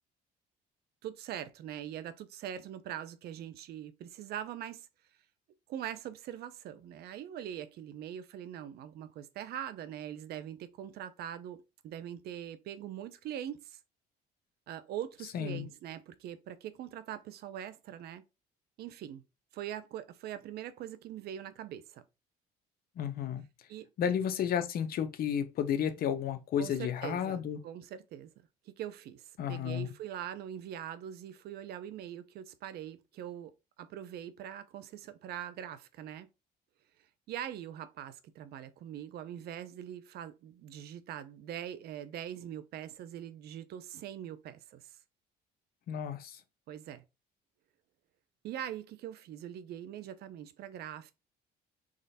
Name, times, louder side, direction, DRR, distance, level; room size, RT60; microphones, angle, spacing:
voice 1, 1.0-4.8 5.7-13.8 14.7-18.2 18.8-19.2 19.5-22.0 23.7-23.9 26.6-28.3 28.8-33.5 33.8-36.3 37.3-45.0 46.7-47.0 48.4-51.1, right 10 dB, 70° right, 0.6 m, -42 dB
voice 2, 15.3-15.7 23.0-23.4 24.0-27.6 29.4-29.9 45.9-46.4, left 8 dB, 60° left, 0.8 m, -32 dB
3.7 x 3.2 x 4.1 m
cardioid pair, 110°, 17 cm